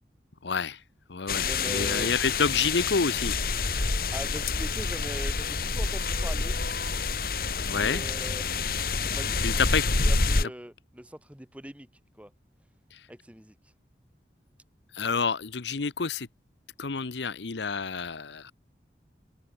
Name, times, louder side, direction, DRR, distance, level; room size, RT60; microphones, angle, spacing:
voice 1, 0.4-0.8 1.1-3.4 7.7-8.0 9.4-9.8 10.4-10.5 12.9-13.1 14.9-16.3 16.8-18.5, left 5 dB, 80° left, 0.9 m, -28 dB
sound 1, 1.3-10.4, left 4 dB, 55° left, 1.9 m, -28 dB
voice 2, 1.3-2.1 4.1-6.6 7.7-8.6 9.0-9.6 10.0-11.9 12.2-12.3 13.1-13.6, equal, 5° right, 2.9 m, -41 dB
head